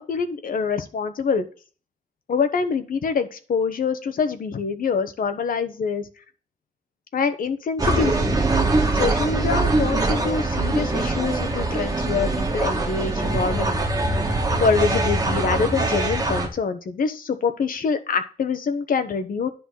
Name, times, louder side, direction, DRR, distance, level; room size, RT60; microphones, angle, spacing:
voice 1, 0.0-1.4 2.3-6.0 7.1-8.4 8.9-13.8 14.6-19.5, left 5 dB, 80° left, 9 dB, 1.1 m, -25 dB
sound 1, 7.8-16.5, right 2 dB, 25° right, 1.7 m, -23 dB
10.0 x 4.0 x 6.2 m, 0.37 s
wide cardioid pair, 155°, 14 cm